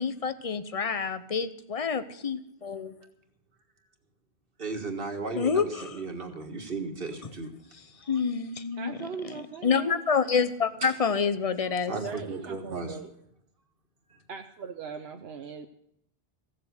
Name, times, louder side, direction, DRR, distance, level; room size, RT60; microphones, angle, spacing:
voice 1, 0.0-2.9 5.4-5.7 8.1-9.0 9.6-11.9, left 6 dB, 40° left, 0.8 m, -27 dB
voice 2, 4.6-7.5 10.8-10.9 11.9-13.0 14.1-14.2, right 3 dB, 65° right, 1.9 m, -35 dB
voice 3, 8.8-10.0 11.9-13.1 14.3-15.7, right 6 dB, 85° right, 1.1 m, -39 dB
16.0 x 7.7 x 8.0 m
omnidirectional pair, 1.0 m